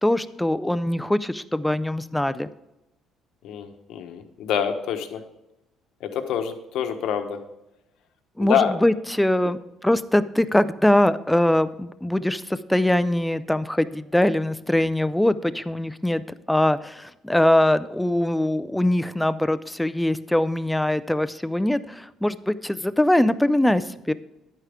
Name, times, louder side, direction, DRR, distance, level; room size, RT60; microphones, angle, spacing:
voice 1, 0.0-2.5 8.4-16.2 16.5-24.1, left 1 dB, 5° left, 14 dB, 0.3 m, -22 dB
voice 2, 3.4-5.2 6.0-7.4 8.4-8.7 9.4-9.5, left 8 dB, 70° left, 7 dB, 1.2 m, -26 dB
11.0 x 9.0 x 3.6 m, 0.90 s
cardioid pair, 170°, 0 cm